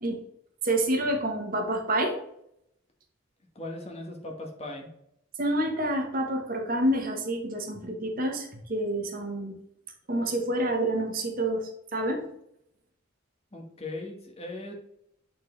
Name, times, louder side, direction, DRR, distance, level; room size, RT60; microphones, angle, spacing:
voice 1, 0.6-2.2 5.4-9.6 10.1-12.2, right 1 dB, 45° right, 3 dB, 1.1 m, -28 dB
voice 2, 3.5-4.9 13.5-14.7, left 2 dB, 30° left, 1 dB, 1.4 m, -38 dB
8.3 x 4.2 x 3.2 m, 0.74 s
head